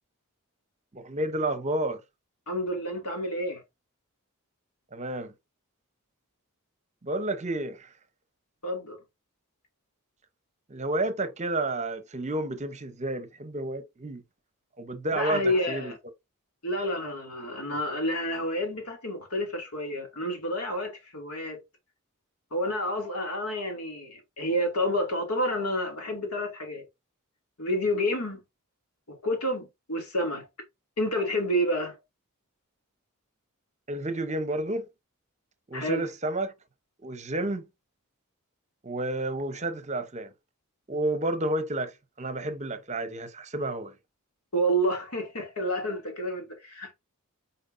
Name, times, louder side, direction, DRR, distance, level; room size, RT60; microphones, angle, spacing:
voice 1, 0.9-2.0 4.9-5.3 7.0-7.9 10.7-14.2 14.8-15.4 15.7-15.9 33.9-34.9 35.7-36.5 37.0-37.7 38.8-40.3 40.9-41.9 42.2-43.9, right 1 dB, 35° right, 0.8 m, -30 dB
voice 2, 2.5-3.6 8.6-9.0 15.1-15.9 16.6-21.6 22.5-26.8 27.6-28.4 29.1-30.5 31.0-32.0 35.7-36.1 44.5-46.9, equal, 85° left, 2.4 m, -29 dB
8.6 x 4.4 x 2.6 m
head